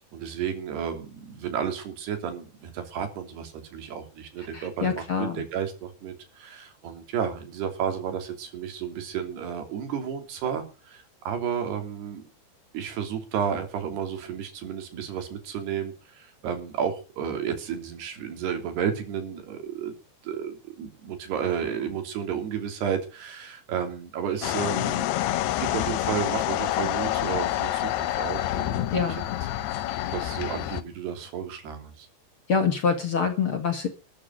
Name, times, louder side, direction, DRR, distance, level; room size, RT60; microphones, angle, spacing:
voice 1, 0.1-12.2 12.7-19.9 20.2-25.1 25.6-29.2 30.1-32.1, right 8 dB, 90° right, 6 dB, 5.1 m, -32 dB
voice 2, 4.5-5.4 28.9-29.2 32.5-33.9, left 6 dB, 45° left, 7 dB, 2.2 m, -25 dB
sound 1, 24.4-30.8, left 13 dB, 85° left, 3.0 m, -27 dB
13.5 x 9.1 x 7.9 m, 0.34 s
omnidirectional pair, 4.5 m